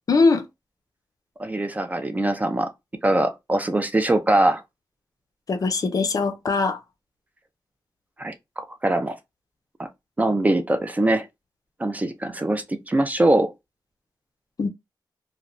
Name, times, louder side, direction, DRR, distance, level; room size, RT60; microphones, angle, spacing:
voice 1, 0.1-0.5 5.5-6.8 14.6-14.7, left 4 dB, 50° left, 0.4 m, -21 dB
voice 2, 1.4-2.7 3.0-4.6 8.2-9.2 9.8-9.9 10.2-11.3 11.8-13.5, right 1 dB, 20° right, 0.3 m, -22 dB
2.9 x 2.1 x 2.5 m
wide cardioid pair, 170°, 8 cm